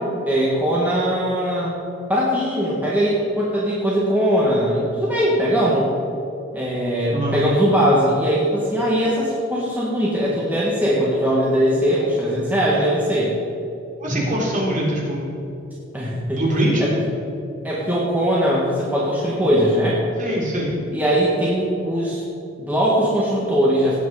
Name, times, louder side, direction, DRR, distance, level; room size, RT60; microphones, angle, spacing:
voice 1, 0.3-1.7 2.1-5.9 6.5-13.3 15.9-16.4 16.8-16.9 17.6-20.0 20.9-22.2 22.6-24.0, equal, 10° right, -6 dB, 1.7 m, -20 dB
voice 2, 14.0-15.3 16.4-16.9 20.2-20.7, right 1 dB, 40° right, -4 dB, 3.6 m, -22 dB
17.5 x 8.3 x 4.9 m, 2.8 s
head